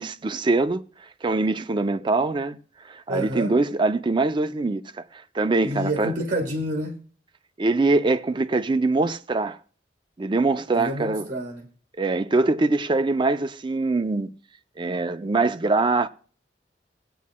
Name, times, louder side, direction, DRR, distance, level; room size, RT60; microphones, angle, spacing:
voice 1, 0.0-2.6 2.8-6.1 7.6-9.6 10.2-11.3 12.0-14.3 14.8-16.1, right 3 dB, 25° right, 0.4 m, -23 dB
voice 2, 3.1-3.5 5.6-6.9 10.7-11.7, right 1 dB, 45° right, 1.4 m, -28 dB
22.5 x 8.3 x 2.2 m
head